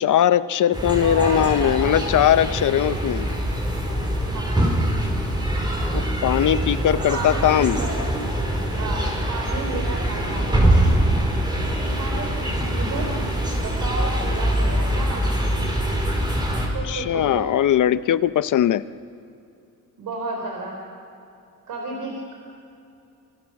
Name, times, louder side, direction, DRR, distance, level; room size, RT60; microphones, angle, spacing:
voice 1, 0.0-3.3 5.9-7.8 16.8-18.8, left 10 dB, 70° left, 14 dB, 0.8 m, -20 dB
sound 1, 0.7-16.7, right 1 dB, 15° right, 5.2 m, -23 dB
voice 2, 1.0-2.1 4.3-4.7 7.1-8.1 8.8-10.8 11.9-13.2 13.6-15.4 16.7-17.6 20.0-20.8 21.7-22.3, right 2 dB, 85° right, 0 dB, 4.2 m, -32 dB
30.0 x 27.0 x 6.0 m, 2.6 s
cardioid pair, 135°, 32 cm